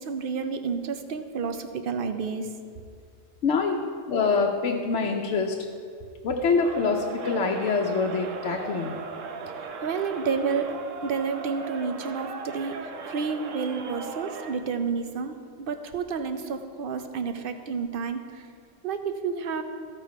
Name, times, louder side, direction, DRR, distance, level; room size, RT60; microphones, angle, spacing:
voice 1, 0.0-2.5 9.8-10.7 11.0-12.8 13.1-18.2 18.8-19.6, right 5 dB, 55° right, 8 dB, 0.7 m, -30 dB
voice 2, 3.4-3.8 4.1-5.6 6.2-9.0, left 4 dB, 65° left, 1 dB, 0.9 m, -25 dB
Crowd, 6.5-14.7, right 4 dB, 75° right, 1.1 m, -38 dB
14.0 x 5.1 x 4.6 m, 2.3 s
omnidirectional pair, 1.3 m